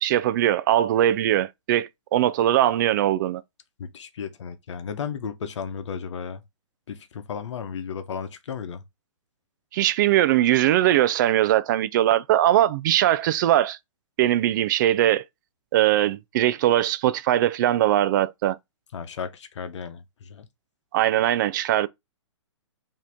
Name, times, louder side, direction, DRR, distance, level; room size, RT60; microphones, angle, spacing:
voice 1, 0.0-3.4 9.7-13.8 14.2-15.2 15.7-18.6 20.9-21.9, right 13 dB, 40° right, 0.4 m, -21 dB
voice 2, 3.8-6.4 6.9-8.8 18.9-20.5, left 6 dB, 65° left, 0.9 m, -34 dB
4.8 x 2.9 x 3.5 m
hypercardioid pair, 140°, 16 cm